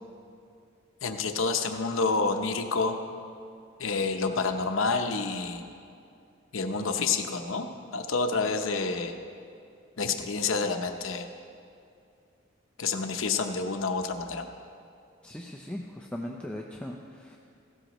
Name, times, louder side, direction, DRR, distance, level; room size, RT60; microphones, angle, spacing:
voice 1, 1.0-2.9 3.8-5.6 6.5-7.7 7.9-9.1 10.0-11.3 12.8-14.5, left 4 dB, 85° left, 6 dB, 0.7 m, -28 dB
voice 2, 15.2-17.4, left 1 dB, 5° left, 0 dB, 0.5 m, -39 dB
16.0 x 13.0 x 3.0 m, 2.4 s
head